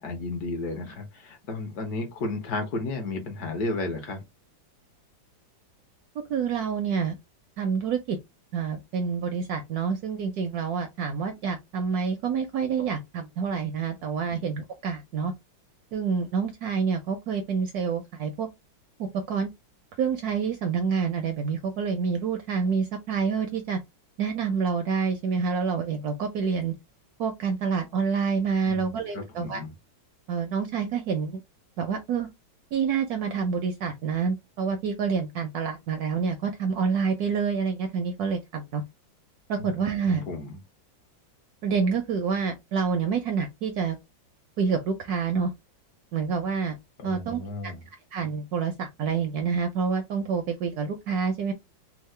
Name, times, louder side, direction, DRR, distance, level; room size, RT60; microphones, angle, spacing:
voice 1, 0.0-4.2 14.3-14.4 28.7-29.7 39.6-39.7 40.1-40.6 47.0-47.8, left 2 dB, 60° left, 1.2 m, -33 dB
voice 2, 6.3-7.2 7.6-8.2 8.5-15.3 15.9-18.5 19.3-19.5 20.0-23.8 24.2-26.7 27.2-29.6 30.3-31.4 31.8-32.3 32.7-38.8 39.5-40.2 41.6-44.0 44.6-45.5 46.1-46.7 47.0-47.7 48.1-51.5, right 6 dB, 75° right, 0.9 m, -27 dB
3.6 x 2.0 x 3.1 m
omnidirectional pair, 2.0 m